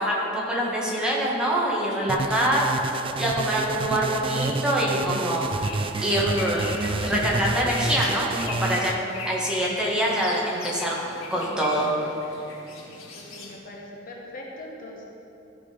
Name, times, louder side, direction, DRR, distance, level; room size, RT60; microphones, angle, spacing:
voice 1, 0.0-2.7 3.2-5.7 6.0-6.8 7.0-11.0 11.3-11.9, right 1 dB, 5° right, -5 dB, 1.5 m, -25 dB
sound 1, 2.1-8.9, right 3 dB, 25° right, 0.3 m, -29 dB
sound 2, 3.0-3.1 3.5-3.8 4.0-4.1 6.5-7.6, equal, 70° left, 2.3 m, -37 dB
sound 3, 5.3-13.6, left 3 dB, 85° left, 1.9 m, -39 dB
voice 2, 12.8-15.0, left 1 dB, 45° left, -2 dB, 1.1 m, -41 dB
14.0 x 5.1 x 5.1 m, 2.8 s
head